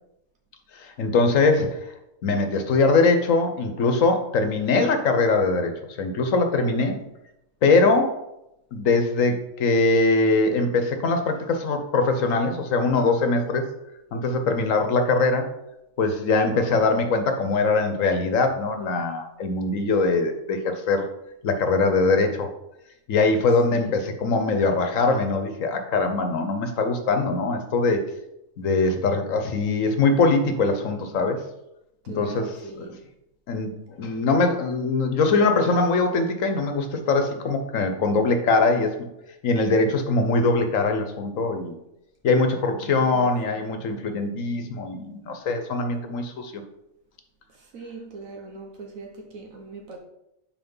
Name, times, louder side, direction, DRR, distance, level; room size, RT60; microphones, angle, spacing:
voice 1, 0.7-1.9 2.2-7.0 7.6-8.2 8.7-13.7 14.1-15.5 16.0-21.1 21.4-22.5 23.1-28.0 28.6-31.4 32.1-32.9 33.5-38.9 39.4-41.7 42.2-46.6, left 3 dB, 75° left, 6 dB, 1.2 m, -22 dB
voice 2, 6.3-6.9 23.7-24.0 32.0-33.0 42.8-43.7 47.5-50.0, right 3 dB, 80° right, 1 dB, 1.3 m, -41 dB
5.8 x 4.5 x 5.4 m, 0.85 s
omnidirectional pair, 1.4 m